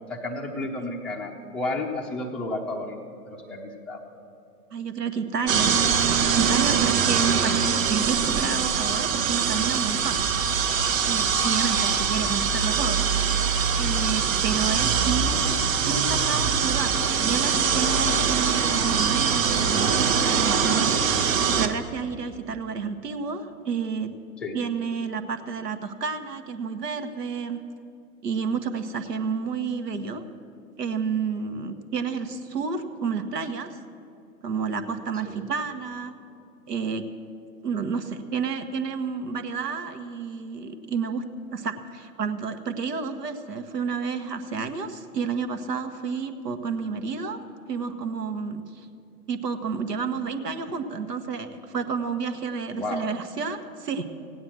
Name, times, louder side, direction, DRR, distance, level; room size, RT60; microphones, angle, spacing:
voice 1, 0.1-3.0 3.2-4.0 14.2-14.4 24.4-24.6 35.2-35.5 52.8-53.1, left 2 dB, ahead, -2 dB, 0.5 m, -32 dB
voice 2, 4.7-5.8 6.3-10.2 11.1-13.1 13.8-21.0 21.5-24.1 24.5-27.6 28.2-30.2 30.8-33.8 34.4-36.1 36.7-37.0 37.6-41.2 41.5-47.4 47.7-48.9 49.3-54.1, right 5 dB, 80° right, 8 dB, 1.3 m, -30 dB
sound 1, 5.5-21.7, right 6 dB, 55° right, 1.0 m, -23 dB
15.5 x 9.5 x 7.5 m, 2.6 s
hypercardioid pair, 120°, 47 cm